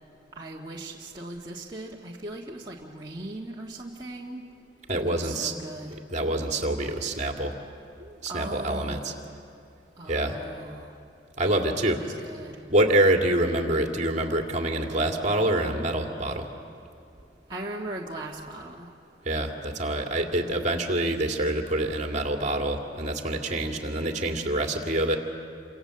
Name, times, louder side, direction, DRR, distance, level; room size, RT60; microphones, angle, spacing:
voice 1, 0.3-4.4 5.1-5.9 8.3-9.2 10.0-10.9 11.9-12.6 17.5-18.9, right 2 dB, 25° right, -4 dB, 1.7 m, -38 dB
voice 2, 4.9-5.5 5.9-7.6 8.0-9.1 10.1-10.5 11.4-12.0 12.7-16.5 19.2-25.2, right 1 dB, 40° right, 2 dB, 2.4 m, -26 dB
29.0 x 26.5 x 7.8 m, 2.5 s
head